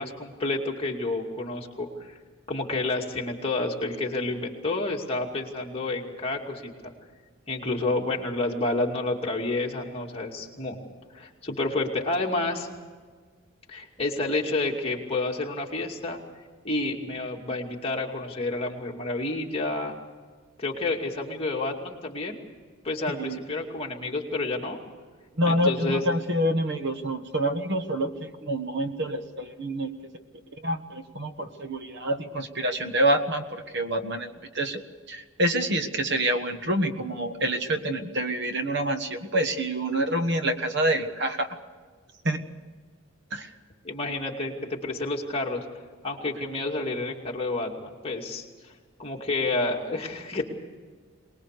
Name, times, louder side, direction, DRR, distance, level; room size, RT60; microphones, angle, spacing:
voice 1, 0.0-2.1 2.5-6.9 7.5-10.8 11.1-12.7 13.7-16.2 16.6-20.0 20.6-22.4 22.8-24.8 25.4-26.0 43.8-45.6 46.0-48.7 49.0-50.4, left 2 dB, 25° left, -1 dB, 2.5 m, -29 dB
voice 2, 23.1-23.4 25.4-29.9 30.6-34.8 35.1-41.5 42.2-42.4 43.3-43.5, right 1 dB, 50° right, 8 dB, 1.4 m, -27 dB
23.5 x 20.5 x 6.7 m, 1.5 s
head